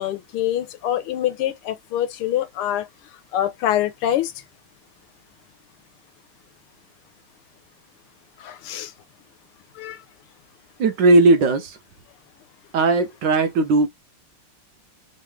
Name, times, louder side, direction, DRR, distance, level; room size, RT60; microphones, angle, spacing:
voice 1, 0.0-2.9 3.3-4.3 8.4-8.9 9.7-10.0, left 12 dB, 90° left, 1.7 m, -25 dB
voice 2, 10.8-11.8 12.7-13.9, right 3 dB, 70° right, 1.1 m, -17 dB
3.6 x 3.2 x 3.1 m
omnidirectional pair, 2.4 m